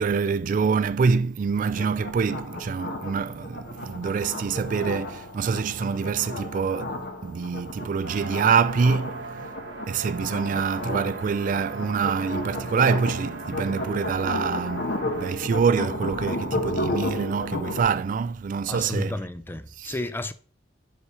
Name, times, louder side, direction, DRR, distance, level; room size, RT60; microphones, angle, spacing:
voice 1, 0.0-9.4 9.9-19.1 19.8-19.9, right 5 dB, 45° right, 0.3 m, -25 dB
sound 1, 1.8-17.8, left 1 dB, 60° left, 1.2 m, -33 dB
sound 2, 8.1-15.3, right 3 dB, 80° right, 1.5 m, -40 dB
voice 2, 18.7-20.3, left 1 dB, 10° left, 0.5 m, -31 dB
5.5 x 4.7 x 5.7 m
head